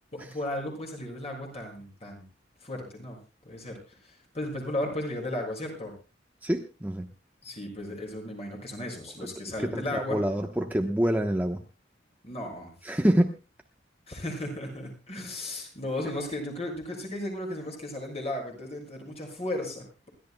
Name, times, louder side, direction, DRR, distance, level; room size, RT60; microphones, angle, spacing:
voice 1, 0.2-2.2 2.6-3.2 3.4-5.9 7.4-10.2 12.2-13.0 14.1-20.1, left 1 dB, 35° left, 0 dB, 6.7 m, -35 dB
voice 2, 6.4-7.1 9.7-11.6 12.8-13.3, equal, 10° right, 3 dB, 1.0 m, -26 dB
28.0 x 13.5 x 2.2 m, 0.31 s
head